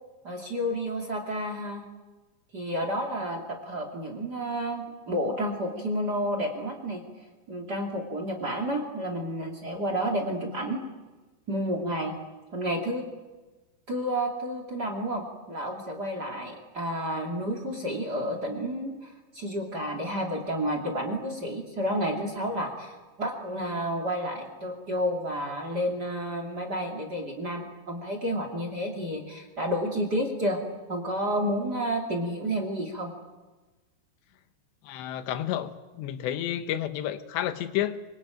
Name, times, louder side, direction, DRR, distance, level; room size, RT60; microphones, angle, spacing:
voice 1, 0.2-1.8 2.5-7.0 7.5-10.8 11.5-12.2 12.5-13.1 13.9-30.6 30.9-33.1, equal, 30° right, 4 dB, 2.5 m, -30 dB
voice 2, 34.9-38.0, left 11 dB, 80° left, 10 dB, 3.3 m, -31 dB
24.5 x 22.5 x 9.1 m, 1.2 s
omnidirectional pair, 5.0 m